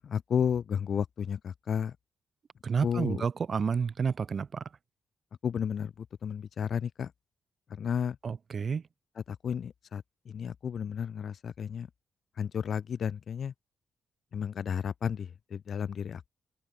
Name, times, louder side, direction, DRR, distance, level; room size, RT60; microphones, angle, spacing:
voice 1, 0.0-1.9 2.8-3.2 5.4-5.9 6.2-7.1 7.8-8.2 9.2-11.9 12.4-13.5 14.3-16.3, left 7 dB, 60° left, 1.0 m, -32 dB
voice 2, 2.6-4.6 8.2-8.8, right 6 dB, 50° right, 0.3 m, -30 dB
open air
supercardioid pair, 65°, 0 cm